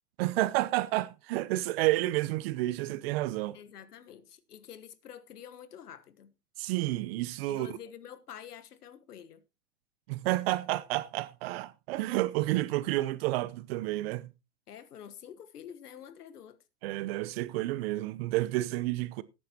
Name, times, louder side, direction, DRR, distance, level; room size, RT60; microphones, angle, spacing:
voice 1, 0.2-3.6 6.6-7.7 10.1-14.3 16.8-19.2, right 17 dB, 40° right, 0.9 m, -30 dB
voice 2, 3.5-6.3 7.5-9.4 14.7-16.6, left 9 dB, 75° left, 1.4 m, -48 dB
17.5 x 9.1 x 2.9 m
hypercardioid pair, 120°, 46 cm